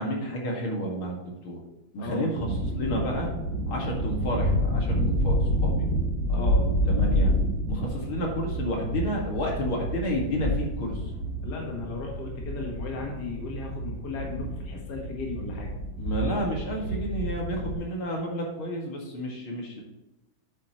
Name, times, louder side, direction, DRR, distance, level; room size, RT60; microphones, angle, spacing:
voice 1, 0.0-1.6 1.9-2.5 2.7-3.3 3.7-5.8 6.3-7.3 7.7-10.9 16.0-19.8, equal, 70° left, -1 dB, 2.7 m, -31 dB
voice 2, 2.0-2.3 6.3-6.7 11.4-15.7, left 4 dB, 55° left, 0 dB, 1.9 m, -36 dB
sound 1, 2.4-17.8, equal, 35° left, 2.3 m, -28 dB
8.9 x 7.9 x 3.0 m, 1.0 s
omnidirectional pair, 2.4 m